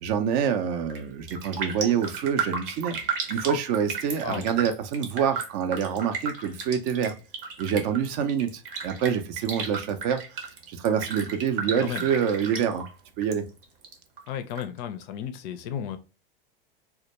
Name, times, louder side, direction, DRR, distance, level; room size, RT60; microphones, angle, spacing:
voice 1, 0.0-3.0 3.3-7.1 7.6-10.2 10.7-12.8 13.2-13.4, right 7 dB, 45° right, 0.4 m, -26 dB
Raindrop, 0.8-1.0 1.3-13.4 13.6-14.6 15.0-15.1, right 5 dB, 65° right, 0.8 m, -34 dB
voice 2, 14.3-16.0, left 9 dB, 45° left, 0.4 m, -34 dB
2.2 x 2.1 x 2.8 m
hypercardioid pair, 95°, 29 cm